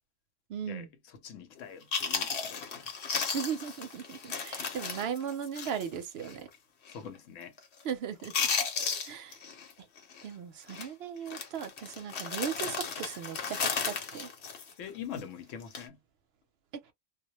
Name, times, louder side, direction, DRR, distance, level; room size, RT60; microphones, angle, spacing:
voice 1, 0.5-0.9 3.3-6.5 7.8-8.5 9.0-9.4 10.2-14.3, right 8 dB, 65° right, 0.7 m, -37 dB
voice 2, 1.2-2.9 6.9-7.5 14.8-16.0, left 8 dB, 90° left, 1.0 m, -44 dB
Chewing mastication, 1.6-1.7 1.9-5.9 6.2-6.4 6.9-7.2 7.4-7.9 8.2-9.7 10.0-10.2 10.7-10.9 11.3-15.2 15.6-15.9, left 6 dB, 65° left, 1.0 m, -34 dB
2.1 x 2.1 x 2.9 m
omnidirectional pair, 1.3 m